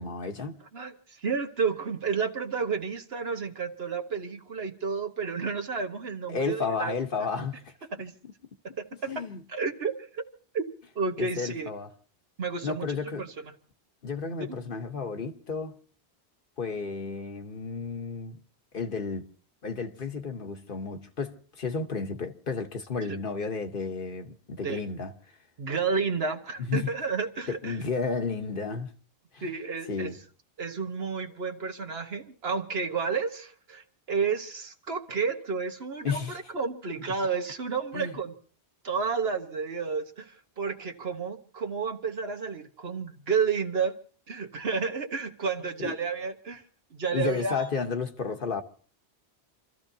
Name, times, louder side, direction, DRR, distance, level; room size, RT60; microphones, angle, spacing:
voice 1, 0.0-0.6 6.3-7.7 9.1-9.4 11.2-11.9 12.6-13.3 14.0-15.8 16.6-18.4 18.7-19.3 19.6-25.1 26.6-26.9 27.5-28.9 29.3-29.5 29.9-30.2 36.0-36.4 37.9-38.2 45.8-45.9 47.1-48.6, left 5 dB, 60° left, 1.2 m, -32 dB
voice 2, 0.7-6.9 7.9-8.2 8.8-9.1 9.5-10.2 10.5-10.7 10.9-11.7 12.4-13.4 24.6-24.8 25.6-27.8 29.4-30.1 30.6-38.3 38.8-43.9 44.3-46.6 46.9-47.7, right 5 dB, 75° right, 1.5 m, -31 dB
28.0 x 14.0 x 2.7 m
omnidirectional pair, 1.0 m